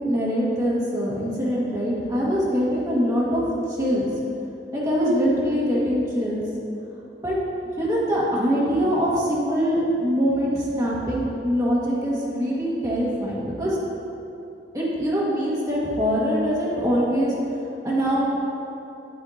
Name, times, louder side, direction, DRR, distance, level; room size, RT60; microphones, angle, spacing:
voice 1, 0.0-4.1 4.7-6.4 7.2-7.4 7.8-13.8 14.7-17.3 17.8-18.3, equal, 20° right, -7 dB, 1.7 m, -23 dB
8.7 x 7.9 x 2.8 m, 3.0 s
head